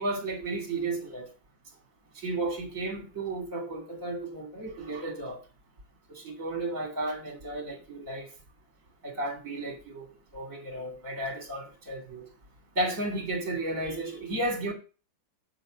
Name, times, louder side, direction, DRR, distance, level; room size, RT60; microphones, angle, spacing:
voice 1, 0.0-1.3 2.2-5.4 6.1-8.3 9.0-10.1 10.3-12.3 12.7-14.7, right 2 dB, 45° right, 3.2 m, -33 dB
7.6 x 7.5 x 7.4 m
omnidirectional pair, 2.0 m